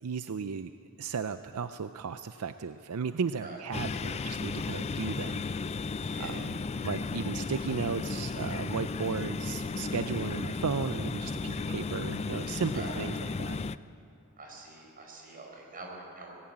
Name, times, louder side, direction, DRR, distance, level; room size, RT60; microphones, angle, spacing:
voice 1, 0.0-0.7 1.0-5.7 6.2-13.6, right 5 dB, 80° right, 10 dB, 0.5 m, -35 dB
sound 1, 3.7-13.8, left 4 dB, 30° left, 0.4 m, -34 dB
voice 2, 6.0-6.5 10.1-10.2 12.7-13.0 14.4-16.3, right 2 dB, 40° right, 0 dB, 4.6 m, -45 dB
18.5 x 16.5 x 8.8 m, 2.5 s
head